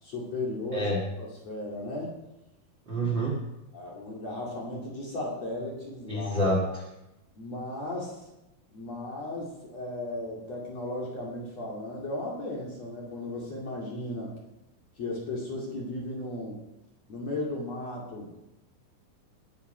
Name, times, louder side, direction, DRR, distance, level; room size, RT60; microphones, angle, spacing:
voice 1, 0.0-0.9 1.2-2.1 3.7-6.4 7.4-8.2 8.7-14.3 15.0-16.6 17.1-18.3, left 2 dB, 45° left, -3 dB, 2.5 m, -35 dB
voice 2, 2.9-3.4 6.1-6.8, equal, 80° right, -1 dB, 1.0 m, -27 dB
20.5 x 7.2 x 5.5 m, 0.92 s
omnidirectional pair, 5.8 m